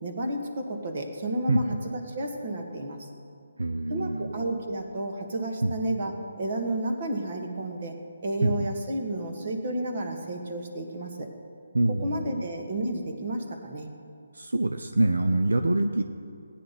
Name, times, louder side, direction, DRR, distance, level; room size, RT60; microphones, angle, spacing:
voice 1, 0.0-3.1 3.9-7.9 8.2-11.3 11.9-13.9, right 1 dB, 50° right, 3 dB, 1.8 m, -31 dB
voice 2, 3.6-4.4 5.6-6.0 8.4-8.7 11.7-12.4 14.3-16.0, right 2 dB, 90° right, 7 dB, 0.6 m, -25 dB
16.5 x 10.0 x 4.1 m, 2.3 s
figure-of-eight pair, 155°, 0 cm